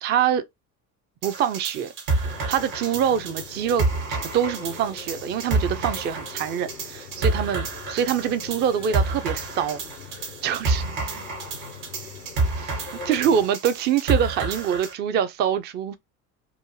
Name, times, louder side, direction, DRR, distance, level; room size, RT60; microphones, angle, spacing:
voice 1, 0.0-0.4 1.2-1.9 2.5-9.8 10.1-11.2 12.6-12.7 13.0-16.0, right 8 dB, 25° right, 0.4 m, -25 dB
sound 1, 1.2-14.9, right 3 dB, 60° right, 1.3 m, -29 dB
sound 2, 2.2-13.5, left 6 dB, 90° left, 0.7 m, -42 dB
3.9 x 2.5 x 2.8 m
figure-of-eight pair, 60°, 47 cm